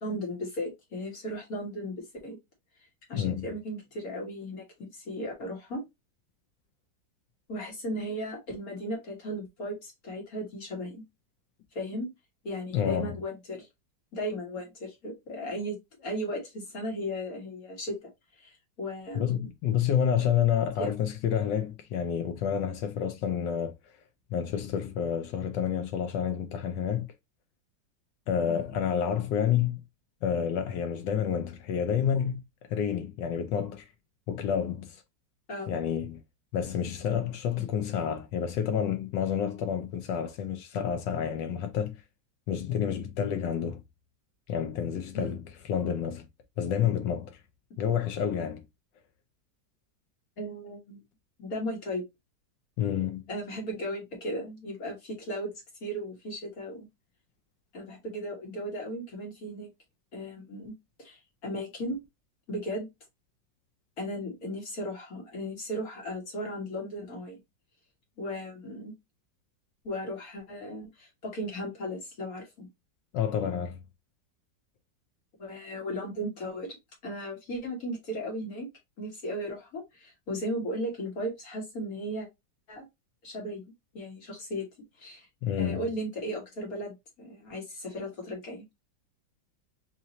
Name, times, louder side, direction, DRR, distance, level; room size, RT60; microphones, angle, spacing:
voice 1, 0.0-2.4 3.1-5.8 7.5-11.0 11.7-12.1 12.4-13.7 14.1-19.5 20.8-20.9 28.5-28.6 35.5-35.8 37.6-37.7 45.1-45.4 50.4-51.0 51.4-52.0 53.3-55.5 55.8-56.9 57.7-59.7 60.1-62.0 62.5-62.9 64.0-67.4 68.2-68.9 69.8-72.7 75.4-76.8 77.0-78.7 79.0-82.3 82.7-82.8 83.2-83.6 83.9-84.7 85.0-85.3 85.6-88.6, equal, 50° left, 1.7 m, -36 dB
voice 2, 3.1-3.4 12.7-13.2 19.1-23.8 24.3-27.1 28.3-29.8 30.2-32.4 32.7-33.9 34.3-35.0 35.7-36.2 36.5-42.0 42.5-43.8 44.5-45.4 45.7-46.3 46.6-47.4 47.8-48.6 52.8-53.2 73.1-73.8 85.4-85.8, left 8 dB, 75° left, 1.2 m, -29 dB
4.1 x 2.6 x 2.8 m
omnidirectional pair, 2.1 m